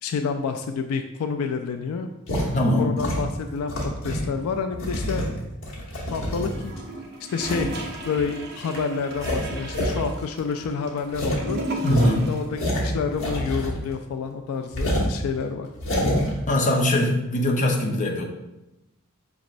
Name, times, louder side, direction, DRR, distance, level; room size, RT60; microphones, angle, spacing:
voice 1, 0.0-2.1 2.8-3.7 4.0-5.4 6.1-6.7 7.3-7.7 8.0-11.6 12.3-15.7, left 5 dB, 85° left, 6 dB, 0.3 m, -28 dB
sound 1, 2.3-2.5 3.0-4.3 4.7-6.8 7.4-7.7 8.2-8.3 8.7-8.8 9.1-10.0 10.2-10.3 10.6-10.7 11.1-11.4 11.8-13.9 14.2-14.3 14.7-15.1 15.7-16.3, equal, 60° left, 1.1 m, -27 dB
voice 2, 2.5-2.9 11.8-12.3 16.5-18.2, left 1 dB, 35° left, -1 dB, 0.7 m, -21 dB
Gurgling / Toilet flush, 6.5-12.5 12.8-12.9, right 1 dB, 50° right, 0.7 m, -34 dB
5.9 x 3.1 x 2.5 m, 0.94 s
head